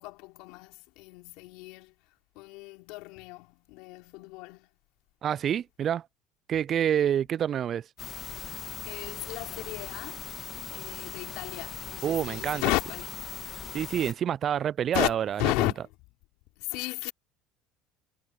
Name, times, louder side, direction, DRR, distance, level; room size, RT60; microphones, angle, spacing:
voice 1, 0.0-4.7 8.8-10.3 10.7-13.2 14.9-15.9 16.6-17.1, left 24 dB, 70° left, 3.1 m, -34 dB
voice 2, 5.2-6.1 6.5-7.9 12.0-12.6 13.7-15.4, right 9 dB, 45° right, 0.3 m, -27 dB
sound 1, 8.0-14.1, left 8 dB, 45° left, 1.9 m, -40 dB
hypercardioid pair, 70°, 0 cm